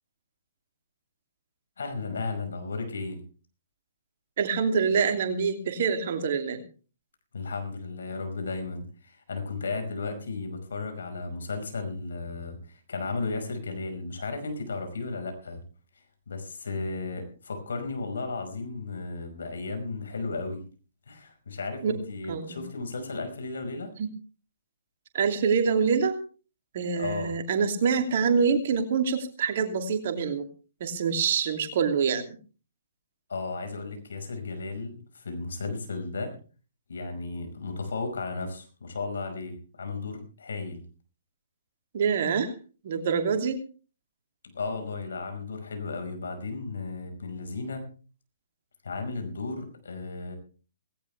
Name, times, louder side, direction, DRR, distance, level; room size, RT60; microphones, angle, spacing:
voice 1, 1.8-3.2 7.3-15.6 16.3-20.6 21.1-23.9 26.9-27.4 33.3-36.3 36.9-40.8 44.5-47.8 48.8-50.4, left 3 dB, 65° left, 6 dB, 5.3 m, -34 dB
voice 2, 4.4-6.6 21.8-22.0 22.3-22.6 24.0-24.1 25.1-26.2 26.7-30.5 30.8-32.4 41.9-42.5 42.8-43.6, right 6 dB, 50° right, 6 dB, 2.7 m, -25 dB
18.0 x 17.5 x 3.4 m, 0.37 s
figure-of-eight pair, 125°, 0 cm